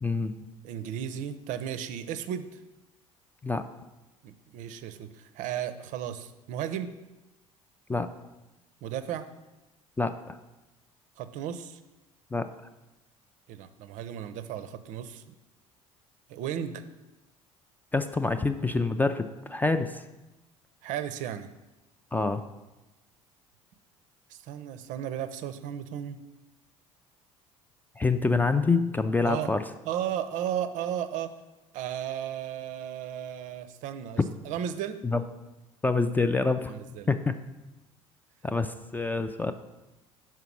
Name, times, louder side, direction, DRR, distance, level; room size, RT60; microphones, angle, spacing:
voice 1, 0.0-0.3 3.4-3.6 7.9-8.1 10.0-10.4 12.3-12.5 17.9-20.0 22.1-22.4 28.0-29.6 34.2-34.3 35.0-35.2 35.8-36.7 37.1-37.3 38.4-39.5, left 3 dB, 10° left, 9 dB, 0.3 m, -26 dB
voice 2, 0.6-2.6 4.2-6.9 8.8-9.3 11.2-11.8 13.5-15.2 16.3-16.8 20.8-21.5 24.3-26.2 29.2-29.5 29.8-31.3 31.7-34.2 34.4-35.0 36.7-37.1, right 10 dB, 50° right, 11 dB, 0.5 m, -34 dB
5.8 x 4.6 x 5.9 m, 1.0 s
figure-of-eight pair, 60°, 17 cm